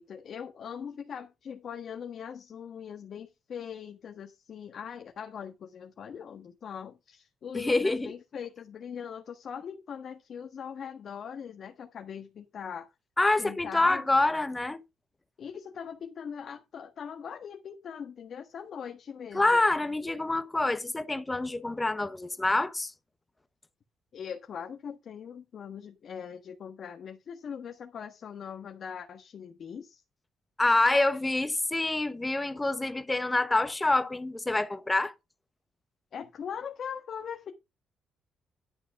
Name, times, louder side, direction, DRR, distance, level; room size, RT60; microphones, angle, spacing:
voice 1, 0.0-12.9 13.4-14.1 15.4-19.6 24.1-30.0 36.1-37.5, left 7 dB, 55° left, 1.4 m, -41 dB
voice 2, 7.5-8.1 13.2-14.8 19.3-22.9 30.6-35.1, left 2 dB, 15° left, 1.1 m, -26 dB
11.0 x 4.8 x 5.9 m
cardioid pair, 90°, 0 cm